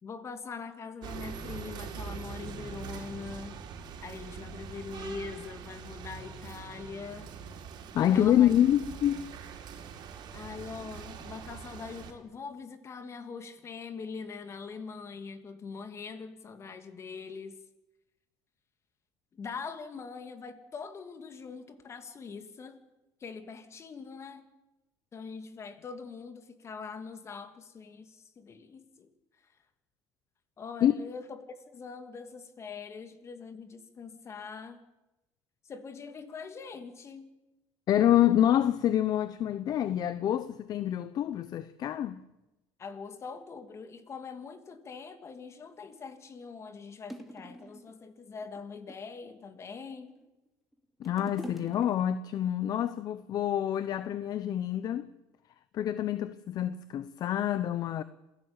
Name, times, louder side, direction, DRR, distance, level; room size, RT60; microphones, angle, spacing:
voice 1, 0.0-3.6 4.0-7.3 8.1-8.5 10.3-17.6 19.3-22.8 23.2-24.4 25.1-29.1 30.6-34.8 35.6-37.3 42.8-50.1, left 5 dB, 30° left, 2.9 m, -43 dB
sound 1, 1.0-12.1, right 6 dB, 55° right, 4.9 m, -43 dB
voice 2, 7.9-9.2 30.8-30.9 37.9-42.2 51.0-55.1 55.7-58.0, left 11 dB, 50° left, 1.0 m, -27 dB
sound 2, 45.9-46.0 46.7-46.8 47.1-47.9 48.4-49.2 49.9-50.5 50.7-52.4 53.1-53.2, equal, ahead, 2.9 m, -45 dB
27.0 x 17.0 x 9.1 m
cardioid pair, 125°, 9 cm